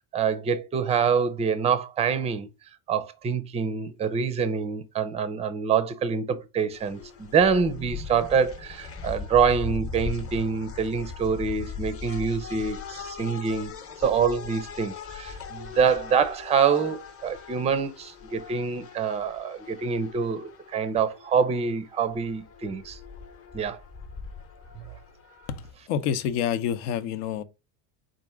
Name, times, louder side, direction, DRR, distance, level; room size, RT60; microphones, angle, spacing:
voice 1, 0.1-2.5 2.9-13.7 14.0-23.0 23.5-23.8, right 6 dB, 15° right, 0.4 m, -26 dB
sound 1, 6.7-25.7, left 5 dB, 30° left, 0.9 m, -40 dB
voice 2, 25.5-27.4, left 9 dB, 75° left, 0.8 m, -28 dB
4.3 x 2.5 x 4.8 m
cardioid pair, 135°, 42 cm